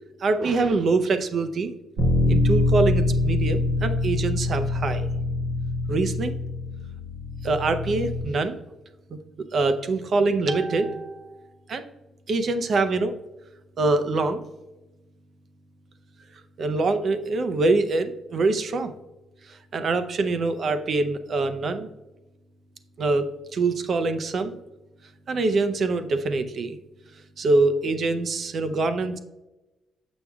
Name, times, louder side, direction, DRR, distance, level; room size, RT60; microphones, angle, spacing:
voice 1, 0.2-1.7 2.3-5.1 5.9-6.4 7.4-8.6 9.1-9.2 9.5-11.4 11.7-11.8 12.3-13.1 13.8-14.4 16.6-18.9 19.5-21.9 23.0-24.6 25.3-26.8 27.4-29.2, right 3 dB, 50° right, 8 dB, 0.6 m, -24 dB
Bass guitar, 2.0-8.2, left 2 dB, 80° right, 1.5 m, -24 dB
7.1 x 5.9 x 2.3 m, 1.0 s
cardioid pair, 90°, 0 cm